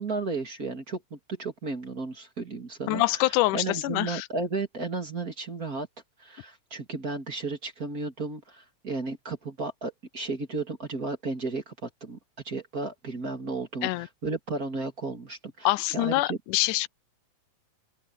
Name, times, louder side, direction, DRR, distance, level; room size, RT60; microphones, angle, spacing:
voice 1, 0.0-5.9 6.2-12.2 12.4-16.4, right 3 dB, 30° right, 2.8 m, -34 dB
voice 2, 2.9-4.3 13.8-14.1 15.6-16.9, left 18 dB, 90° left, 2.1 m, -25 dB
open air
omnidirectional pair, 3.5 m